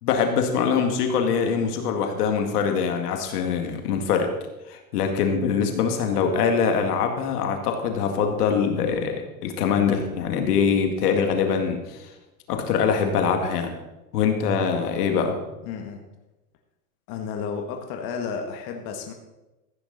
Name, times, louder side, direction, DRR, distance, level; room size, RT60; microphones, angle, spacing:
voice 1, 0.0-4.3 4.7-12.1 12.5-13.7 14.1-15.4, left 6 dB, 75° left, 5 dB, 2.2 m, -23 dB
voice 2, 15.6-16.0 17.1-19.1, left 6 dB, 50° left, 3 dB, 1.7 m, -32 dB
15.0 x 9.5 x 4.1 m, 1.0 s
hypercardioid pair, 110°, 47 cm